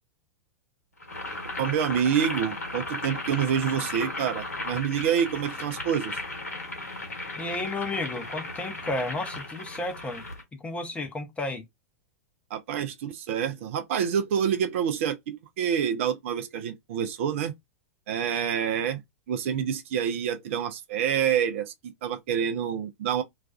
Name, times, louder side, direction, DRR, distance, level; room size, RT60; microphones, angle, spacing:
Boiling, 1.0-10.4, left 2 dB, 80° left, 0.9 m, -36 dB
voice 1, 1.6-6.2 12.5-17.5 18.1-19.0 19.3-23.2, right 8 dB, 55° right, 0.5 m, -27 dB
voice 2, 7.4-10.2 10.6-11.6, left 2 dB, 15° left, 0.7 m, -32 dB
2.4 x 2.2 x 2.3 m
figure-of-eight pair, 95°, 8 cm